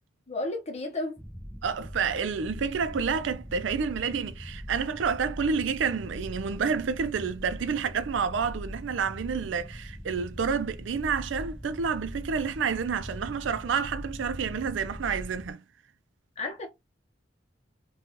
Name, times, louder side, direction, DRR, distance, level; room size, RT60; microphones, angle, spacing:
voice 1, 0.3-1.2 16.4-16.7, left 2 dB, 35° left, 0.8 m, -32 dB
sound 1, 1.2-15.5, equal, 5° right, 0.3 m, -41 dB
voice 2, 1.6-15.6, right 6 dB, 80° right, 0.4 m, -29 dB
2.9 x 2.3 x 2.8 m
head